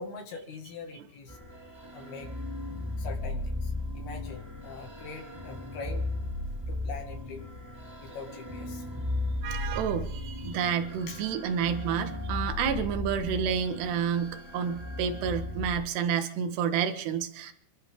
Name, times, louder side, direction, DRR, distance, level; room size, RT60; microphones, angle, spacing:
voice 1, 0.0-1.4 1.9-2.3 3.0-6.1 6.7-7.4 8.0-8.9 10.8-11.3 17.5-17.6, left 4 dB, 70° left, 2 dB, 3.8 m, -43 dB
sound 1, 1.3-15.7, left 2 dB, 10° right, 1.6 m, -36 dB
voice 2, 9.4-17.5, right 7 dB, 85° right, 7 dB, 3.6 m, -30 dB
28.5 x 13.0 x 3.7 m, 0.63 s
omnidirectional pair, 4.7 m